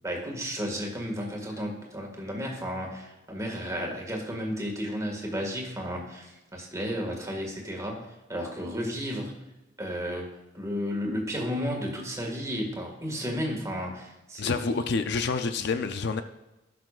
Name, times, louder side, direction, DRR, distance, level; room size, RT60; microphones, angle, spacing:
voice 1, 0.0-9.3 9.8-10.3 10.5-14.7, equal, 15° right, -1 dB, 1.8 m, -33 dB
voice 2, 14.4-16.2, left 4 dB, 60° left, 9 dB, 0.5 m, -28 dB
17.0 x 6.0 x 2.4 m, 1.0 s
head